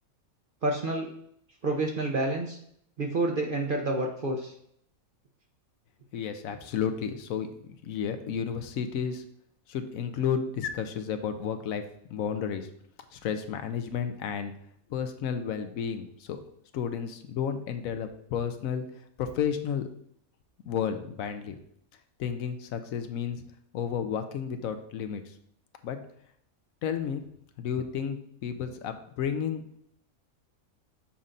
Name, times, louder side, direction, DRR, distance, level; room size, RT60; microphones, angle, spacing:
voice 1, 0.6-1.1 1.6-2.6 3.0-4.5, right 2 dB, 50° right, 2 dB, 0.6 m, -28 dB
voice 2, 6.1-7.5 7.8-9.2 9.7-11.8 12.1-12.7 13.1-14.5 14.9-16.4 16.7-18.8 19.2-19.9 20.7-21.6 22.2-23.4 23.7-25.2 25.8-26.0 26.8-27.2 27.6-29.8, left 7 dB, 75° left, 8 dB, 1.0 m, -32 dB
7.2 x 5.4 x 2.6 m, 0.69 s
omnidirectional pair, 1.5 m